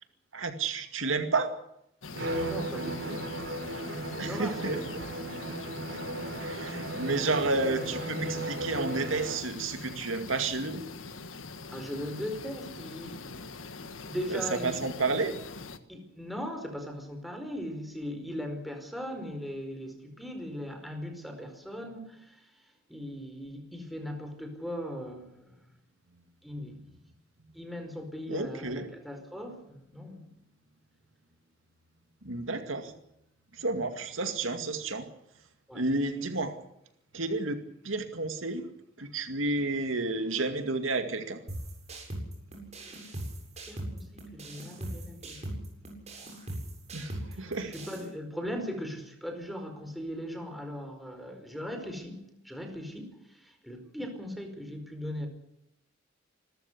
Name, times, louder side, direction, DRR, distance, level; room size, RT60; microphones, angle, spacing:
voice 1, 0.3-1.5 4.2-4.8 6.4-10.8 14.3-15.4 28.3-28.9 32.2-32.9 33.5-35.1 35.7-36.6 37.1-37.6 37.8-38.7 39.0-41.4 46.9-47.7, right 3 dB, 80° right, 7 dB, 2.3 m, -31 dB
sound 1, 2.0-15.8, left 3 dB, 85° left, 1.6 m, -43 dB
Bowed string instrument, 2.1-9.5, right 1 dB, 65° right, 4.0 m, -36 dB
voice 2, 2.3-3.3 4.1-4.8 11.7-13.5 14.1-14.8 15.9-22.5 22.9-25.6 26.4-26.9 27.5-30.3 35.7-35.8 43.7-45.5 47.7-55.3, equal, ahead, 4 dB, 4.8 m, -39 dB
sound 2, 41.5-48.1, right 1 dB, 35° right, 7.6 m, -40 dB
27.0 x 14.0 x 8.2 m, 0.79 s
head